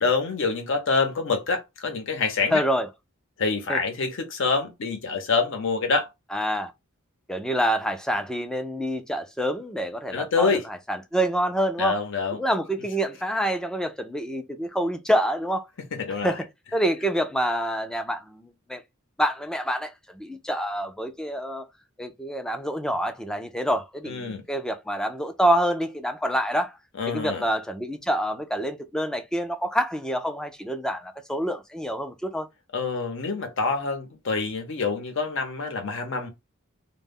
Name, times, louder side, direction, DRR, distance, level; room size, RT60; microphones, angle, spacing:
voice 1, 0.0-2.6 3.4-6.1 10.1-10.6 11.8-12.4 15.9-16.4 24.1-24.4 27.0-27.4 32.7-36.3, left 4 dB, 65° left, 0.7 m, -26 dB
voice 2, 2.5-2.9 3.7-3.8 6.3-6.7 7.3-11.9 12.3-15.7 16.2-16.5 16.7-18.8 19.2-21.7 22.0-26.7 27.1-32.5, equal, 5° left, 0.3 m, -27 dB
2.1 x 2.0 x 3.5 m
head